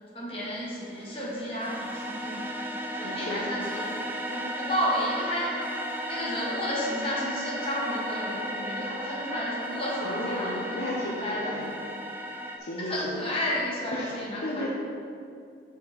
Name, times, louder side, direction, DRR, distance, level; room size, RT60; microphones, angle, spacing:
voice 1, 0.1-2.5 2.9-3.9 4.3-5.5 6.1-11.8 12.8-14.7, equal, 30° left, -6 dB, 1.6 m, -32 dB
sound 1, 0.7-12.6, right 1 dB, 10° right, 0.4 m, -35 dB
voice 2, 3.0-3.5 10.0-11.7 12.3-13.2 13.9-14.7, left 1 dB, 65° left, -4 dB, 0.8 m, -34 dB
6.2 x 5.9 x 4.2 m, 2.4 s
head